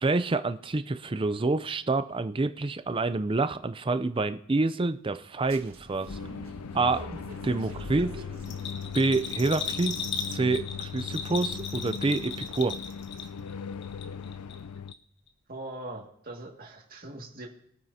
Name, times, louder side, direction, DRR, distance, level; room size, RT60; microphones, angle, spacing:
voice 1, 0.0-6.2 6.7-8.1 8.9-10.0 10.3-12.8, right 3 dB, 25° right, 11 dB, 0.4 m, -27 dB
turn that shit off, 5.4-11.0, right 1 dB, 65° right, 1.6 m, -46 dB
sound 1, 6.1-14.9, left 6 dB, 85° left, 0.4 m, -39 dB
Bell, 8.4-13.5 13.8-14.6 14.9-15.0, left 6 dB, 50° left, 1.1 m, -36 dB
voice 2, 15.5-17.5, right 2 dB, 40° right, 0 dB, 2.0 m, -41 dB
22.5 x 9.0 x 2.8 m, 0.74 s
head